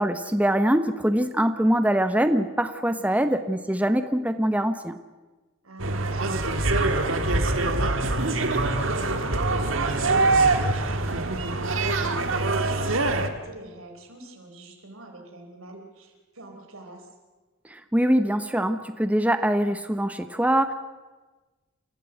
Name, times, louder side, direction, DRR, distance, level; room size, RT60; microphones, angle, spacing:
voice 1, 0.0-5.0 17.7-20.7, right 1 dB, 5° right, 9 dB, 0.8 m, -23 dB
voice 2, 2.9-3.3 5.6-17.1, right 1 dB, 90° right, 3 dB, 4.1 m, -44 dB
sound 1, 5.8-13.3, right 2 dB, 65° right, 1.7 m, -24 dB
28.5 x 14.0 x 7.9 m, 1.3 s
head